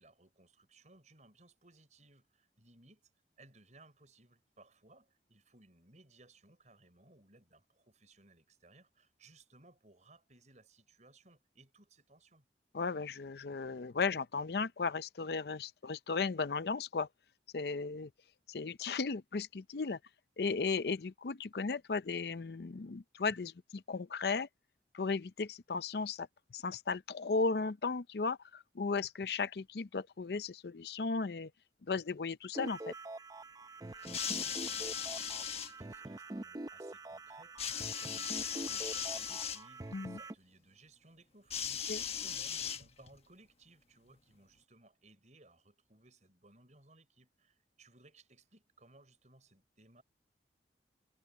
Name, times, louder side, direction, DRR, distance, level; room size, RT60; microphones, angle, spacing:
voice 1, 0.0-3.1 3.4-12.5 34.0-50.0, right 2 dB, 40° right, 6.0 m, -62 dB
voice 2, 12.7-17.1 17.5-18.1 18.5-20.0 20.4-24.5 24.9-31.5 31.9-32.9 39.9-40.2 41.9-42.0, left 4 dB, 60° left, 0.5 m, -35 dB
sound 1, 32.5-40.3, right 2 dB, 20° right, 0.5 m, -45 dB
sound 2, 34.0-35.7 37.6-39.6 41.5-43.2 44.2-44.3, left 8 dB, 35° left, 1.4 m, -38 dB
head